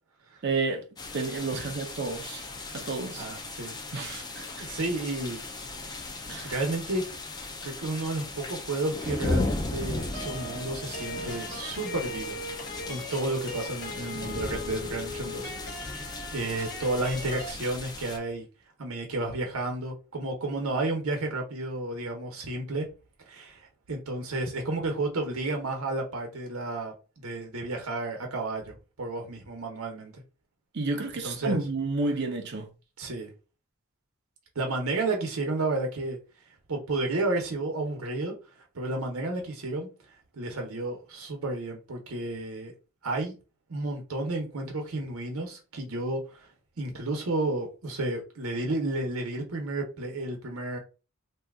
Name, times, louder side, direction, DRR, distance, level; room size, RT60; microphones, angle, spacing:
voice 1, 0.4-0.9 1.1-2.4 2.7-3.3 3.9-4.6 6.3-6.5 30.7-32.7, right 3 dB, 50° right, 0.6 m, -31 dB
sound 1, 1.0-18.2, left 2 dB, 20° left, 0.4 m, -36 dB
voice 2, 3.1-3.8 4.6-5.4 6.4-7.0 7.6-12.4 12.8-15.5 15.9-18.5 18.8-22.9 23.3-26.9 27.2-30.1 31.2-31.6 33.0-33.3 34.5-36.2 36.7-38.3 38.7-39.9 40.3-42.7 43.0-43.3 43.7-46.5 46.8-50.8, right 2 dB, 85° right, 0.9 m, -32 dB
sound 2, 10.1-17.5, left 1 dB, 55° left, 0.8 m, -39 dB
2.8 x 2.3 x 3.5 m
head